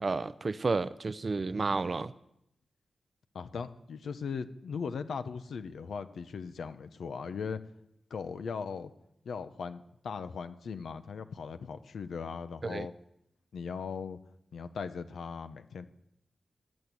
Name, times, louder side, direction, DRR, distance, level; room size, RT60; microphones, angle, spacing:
voice 1, 0.0-2.1 12.6-12.9, right 3 dB, 40° right, 14 dB, 0.5 m, -31 dB
voice 2, 3.3-7.6 8.1-8.9 9.2-12.9 13.5-14.2 14.5-15.9, left 5 dB, 85° left, 10 dB, 0.9 m, -38 dB
19.0 x 9.1 x 8.3 m, 0.80 s
wide cardioid pair, 125°, 0 cm